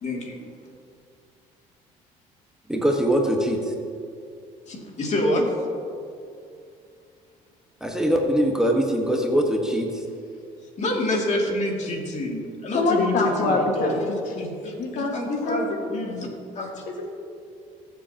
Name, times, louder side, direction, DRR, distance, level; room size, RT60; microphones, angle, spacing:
voice 1, 0.0-0.4 4.7-5.5 10.8-14.0 14.4-16.3 16.5-16.8, left 1 dB, 45° left, 0 dB, 2.6 m, -27 dB
voice 2, 2.7-3.6 7.8-9.9, equal, 5° right, 0 dB, 1.5 m, -22 dB
voice 3, 12.7-14.5 14.8-16.0, left 3 dB, 60° left, 1 dB, 1.8 m, -25 dB
20.5 x 7.7 x 3.0 m, 2.4 s
supercardioid pair, 85°, 16 cm